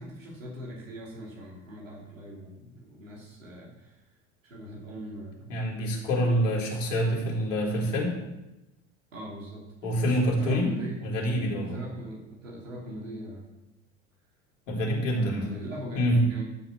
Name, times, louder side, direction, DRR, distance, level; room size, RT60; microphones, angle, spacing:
voice 1, 0.0-4.0 4.4-5.5 9.1-9.7 10.0-11.1 11.6-13.5 15.1-16.4, equal, 80° right, -3 dB, 3.0 m, -40 dB
voice 2, 5.5-8.2 9.8-10.7 11.0-11.8 14.7-15.5 16.0-16.2, equal, 75° left, -3 dB, 3.8 m, -26 dB
12.0 x 6.0 x 6.3 m, 0.98 s
figure-of-eight pair, 75°, 38 cm